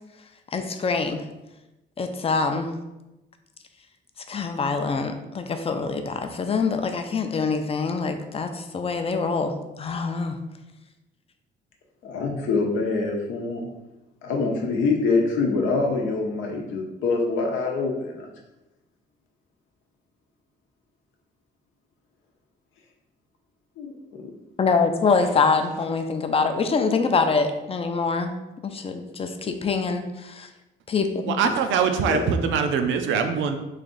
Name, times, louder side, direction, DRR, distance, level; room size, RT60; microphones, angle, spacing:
voice 1, 0.5-1.2 2.0-2.7 4.3-9.5 9.8-10.4 24.6-28.3 28.6-30.5 30.9-31.4, left 4 dB, 30° left, 7 dB, 0.4 m, -24 dB
voice 2, 12.0-13.7 14.2-18.3 23.8-23.9 24.2-24.3 25.1-25.2 31.4-31.5 32.0-32.2, left 3 dB, 85° left, 1 dB, 0.7 m, -25 dB
voice 3, 31.2-33.6, right 6 dB, 75° right, 7 dB, 0.5 m, -23 dB
3.2 x 2.5 x 3.8 m, 0.98 s
cardioid pair, 90°, 20 cm